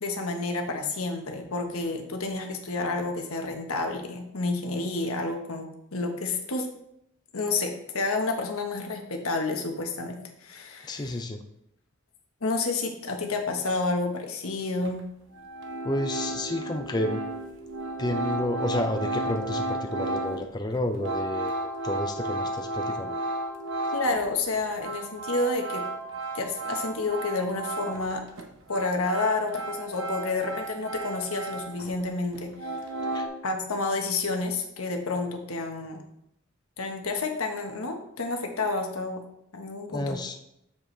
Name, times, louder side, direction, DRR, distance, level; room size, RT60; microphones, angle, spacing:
voice 1, 0.0-6.7 7.3-11.1 12.4-15.1 23.9-25.8 26.3-28.2 28.7-32.7 33.4-36.0 36.8-39.2 39.5-40.2, left 3 dB, 90° left, 4 dB, 1.3 m, -30 dB
voice 2, 10.8-11.4 15.8-17.2 18.0-23.2 33.1-33.3 39.9-40.3, left 1 dB, 20° left, 6 dB, 0.5 m, -30 dB
sound 1, 14.8-14.9 15.3-24.3 24.6-28.1 28.4-32.0 32.3-33.3, right 2 dB, 60° right, 1.0 m, -33 dB
7.6 x 7.2 x 3.3 m, 0.79 s
head